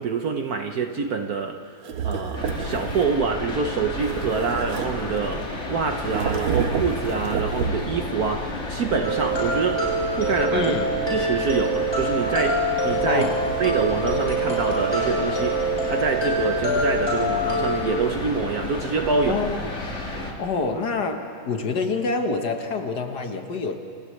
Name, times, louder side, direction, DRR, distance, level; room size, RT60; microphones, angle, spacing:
voice 1, 0.0-1.7 2.0-9.9 10.2-10.7 11.1-13.3 13.6-19.4, right 5 dB, 60° right, 5 dB, 1.1 m, -26 dB
sound 1, 1.8-3.2 4.0-5.5 6.0-8.0, right 6 dB, 90° right, 2.1 m, -29 dB
sound 2, 2.3-20.3, left 2 dB, 35° left, 2.4 m, -32 dB
sound 3, 9.0-17.8, right 2 dB, 10° left, 7.2 m, -25 dB
voice 2, 10.5-10.9 13.0-13.4 19.3-19.7 20.4-23.9, left 4 dB, 55° left, 5 dB, 1.7 m, -26 dB
29.5 x 28.5 x 3.2 m, 2.3 s
omnidirectional pair, 2.3 m